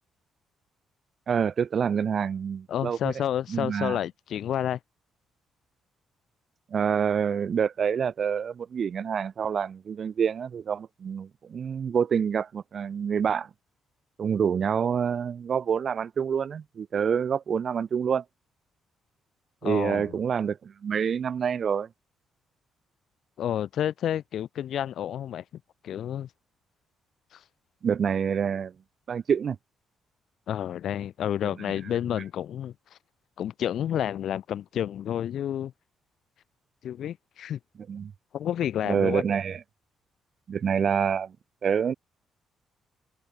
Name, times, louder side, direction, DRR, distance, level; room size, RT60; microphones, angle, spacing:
voice 1, 1.3-3.1 3.5-4.0 6.7-13.5 14.2-18.2 19.6-21.9 27.8-28.7 29.1-29.6 37.9-38.1 38.8-39.6 40.5-41.3 41.6-41.9, right 7 dB, 50° right, 2.0 m, -27 dB
voice 2, 2.7-4.8 19.6-20.2 23.4-25.4 25.8-26.3 27.3-27.4 30.5-32.7 33.4-35.7 36.8-37.6 38.3-39.2, left 10 dB, 70° left, 3.5 m, -30 dB
cardioid pair, 90°, 0 cm